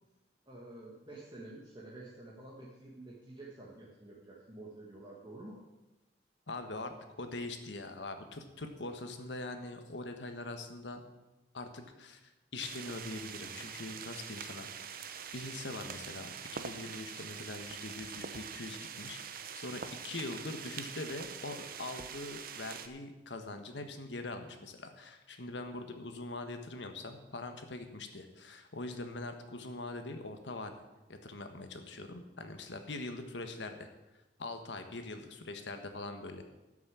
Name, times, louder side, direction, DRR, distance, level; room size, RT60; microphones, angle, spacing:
voice 1, 0.4-5.6, right 2 dB, 25° right, -4 dB, 1.6 m, -49 dB
voice 2, 6.5-11.0 11.5-15.0 15.3-30.8 31.1-33.8 34.4-36.4, left 2 dB, 90° left, 7 dB, 1.3 m, -43 dB
sound 1, 12.6-22.9, right 7 dB, 55° right, 0.8 m, -44 dB
12.0 x 6.3 x 7.5 m, 1.1 s
head